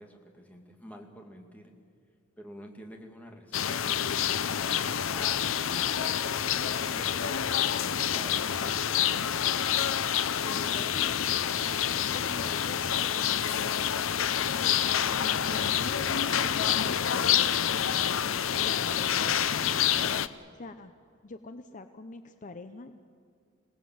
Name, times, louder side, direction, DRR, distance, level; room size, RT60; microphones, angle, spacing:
voice 1, 0.0-1.7 2.4-8.9 10.5-11.1, equal, 10° left, 2 dB, 2.3 m, -48 dB
sound 1, 3.5-20.3, left 9 dB, 80° left, 0.7 m, -27 dB
voice 2, 10.3-11.1 12.1-13.4 14.6-18.2 18.6-20.9 21.2-23.0, left 2 dB, 40° left, 9 dB, 0.7 m, -45 dB
27.5 x 18.5 x 7.9 m, 2.2 s
head